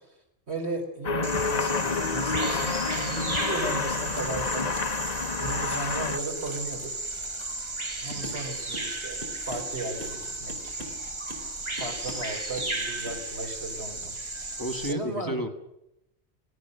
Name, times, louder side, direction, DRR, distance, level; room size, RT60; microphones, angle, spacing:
voice 1, 0.5-4.8 5.4-6.9 8.0-10.8 11.8-15.3, right 2 dB, 85° right, 2 dB, 4.7 m, -36 dB
sound 1, 1.0-6.2, left 4 dB, 40° left, 0.9 m, -29 dB
Bird vocalization bird call bird song, 1.2-14.9, right 2 dB, 30° right, 1.2 m, -34 dB
sound 2, 8.2-8.5 8.7-8.9 9.2-10.2 10.5-11.0 11.3-11.5 11.8-12.3 12.6-12.8 13.0-13.2, right 1 dB, 55° right, 4.2 m, -42 dB
voice 2, 14.6-15.5, equal, 20° left, 4 dB, 1.8 m, -32 dB
27.0 x 18.0 x 6.7 m, 0.86 s
omnidirectional pair, 1.1 m